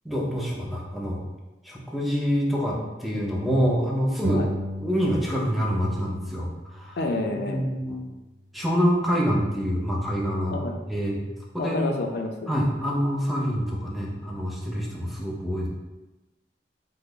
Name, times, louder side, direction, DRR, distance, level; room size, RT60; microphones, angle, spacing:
voice 1, 0.0-1.2 1.6-4.5 4.8-7.0 7.5-8.0 8.5-10.5 10.9-11.2 11.5-11.8 12.5-15.7, equal, ahead, -3 dB, 0.5 m, -26 dB
sound 1, 4.2-5.7 6.0-7.8, right 1 dB, 65° right, 0.4 m, -34 dB
voice 2, 7.0-7.6 10.5-10.8 11.6-12.5, left 2 dB, 65° left, 4 dB, 0.4 m, -28 dB
3.2 x 2.0 x 3.7 m, 1.1 s
head